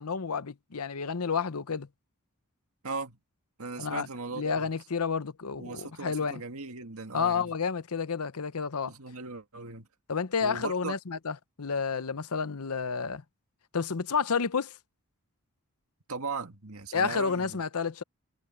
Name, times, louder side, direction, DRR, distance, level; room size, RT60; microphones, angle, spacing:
voice 1, 0.0-1.9 3.8-6.4 7.1-8.9 10.1-13.2 13.7-14.8 16.9-18.0, left 5 dB, 90° left, 0.9 m, -30 dB
voice 2, 2.8-3.2 3.6-4.7 5.6-7.5 8.9-9.9 10.4-11.0 16.1-17.6, right 3 dB, 75° right, 1.9 m, -38 dB
head